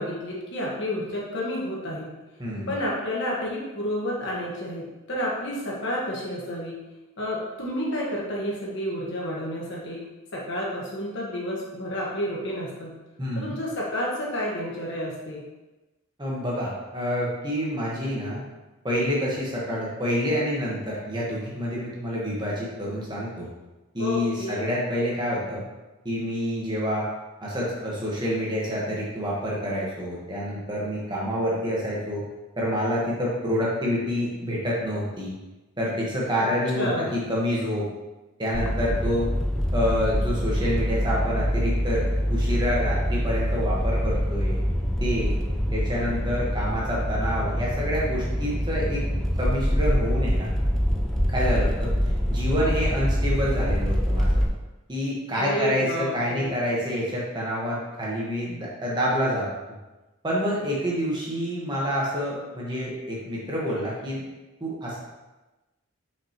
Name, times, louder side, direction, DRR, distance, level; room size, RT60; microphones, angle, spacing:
voice 1, 0.0-2.1 2.7-6.8 7.2-10.0 10.3-12.9 13.3-15.4 24.0-24.7 36.7-37.1 55.3-56.5, left 1 dB, 55° left, -4 dB, 1.4 m, -30 dB
voice 2, 2.4-2.7 13.2-13.6 16.2-18.4 18.8-23.5 23.9-25.6 26.0-27.1 27.4-32.2 32.6-35.3 35.8-37.9 38.4-39.3 39.7-44.6 45.0-45.4 45.7-49.0 49.4-50.5 51.3-51.9 52.3-54.4 54.9-59.5 60.2-64.2 64.6-65.0, equal, 20° right, -5 dB, 1.3 m, -27 dB
sound 1, 38.5-54.4, equal, 5° left, 0.5 m, -25 dB
5.9 x 5.4 x 3.0 m, 1.1 s
head